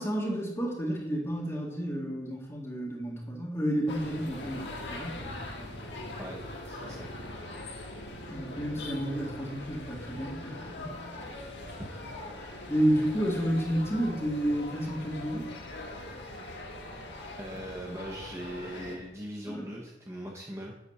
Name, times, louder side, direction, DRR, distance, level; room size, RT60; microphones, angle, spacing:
voice 1, 0.0-5.3 8.1-10.9 12.4-15.5 19.5-19.6, equal, 15° left, -3 dB, 1.8 m, -31 dB
sound 1, 3.9-19.0, left 2 dB, 70° left, 1.5 m, -42 dB
voice 2, 6.2-7.1 11.8-11.9 17.4-20.8, equal, 15° right, -2 dB, 0.8 m, -40 dB
8.3 x 4.2 x 6.4 m, 0.97 s
head